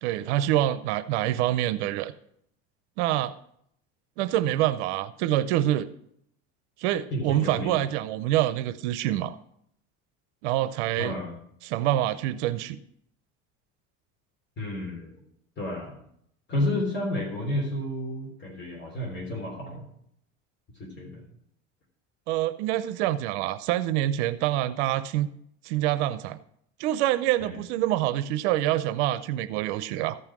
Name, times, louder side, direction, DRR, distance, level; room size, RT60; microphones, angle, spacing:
voice 1, 0.0-2.1 3.0-3.3 4.2-5.9 6.8-9.4 10.4-11.2 11.6-12.8 22.3-25.3 25.6-26.4 26.8-30.2, right 13 dB, 90° right, 12 dB, 0.6 m, -26 dB
voice 2, 7.1-7.8 11.0-11.4 14.6-15.2 15.6-15.9 16.5-19.9 20.8-21.2 27.4-27.5, left 1 dB, 30° left, 0 dB, 3.6 m, -31 dB
13.5 x 5.6 x 6.0 m, 0.71 s
supercardioid pair, 115°, 33 cm